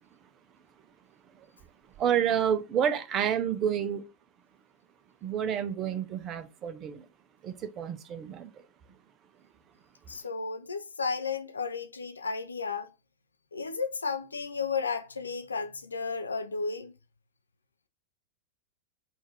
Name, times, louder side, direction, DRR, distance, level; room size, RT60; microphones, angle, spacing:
voice 1, 2.0-4.0 5.2-7.1 7.4-8.5, right 8 dB, 30° right, 0.6 m, -29 dB
voice 2, 10.1-12.9 13.5-16.9, left 5 dB, 75° left, 0.5 m, -33 dB
3.9 x 2.5 x 4.4 m
figure-of-eight pair, 90°, 0 cm